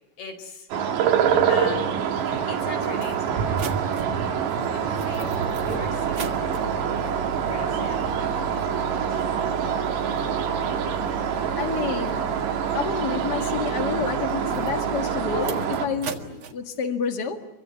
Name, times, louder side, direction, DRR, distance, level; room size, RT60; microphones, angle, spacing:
voice 1, 0.2-0.7 1.5-1.9 2.5-4.0 4.7-8.7 15.3-15.6, left 3 dB, 65° left, 4 dB, 7.0 m, -37 dB
sound 1, 0.7-15.9, right 8 dB, 90° right, 4.4 m, -26 dB
sound 2, 1.3-8.3, right 6 dB, 70° right, 2.6 m, -36 dB
sound 3, 2.3-2.4 2.9-16.5, right 4 dB, 50° right, 1.6 m, -37 dB
voice 2, 11.6-12.3 12.7-15.5 15.8-17.5, left 6 dB, 40° left, 5 dB, 1.5 m, -29 dB
27.0 x 24.0 x 8.4 m, 0.95 s
omnidirectional pair, 4.8 m